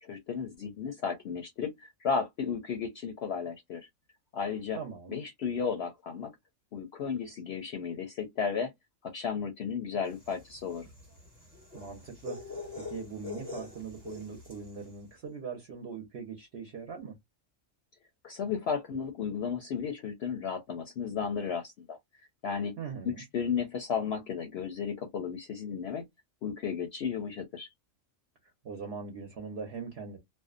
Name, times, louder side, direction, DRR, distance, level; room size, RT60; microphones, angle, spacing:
voice 1, 0.0-3.9 4.3-4.8 5.1-6.3 6.7-8.7 9.0-10.9 18.2-22.0 22.4-22.8 23.0-26.1 26.4-27.7, left 6 dB, 65° left, 0.7 m, -34 dB
voice 2, 4.7-5.2 11.7-12.4 12.7-17.1 22.8-23.2 28.6-30.2, right 5 dB, 55° right, 1.0 m, -41 dB
sound 1, 10.2-14.7, left 3 dB, 15° right, 1.1 m, -43 dB
2.6 x 2.1 x 2.4 m
omnidirectional pair, 1.4 m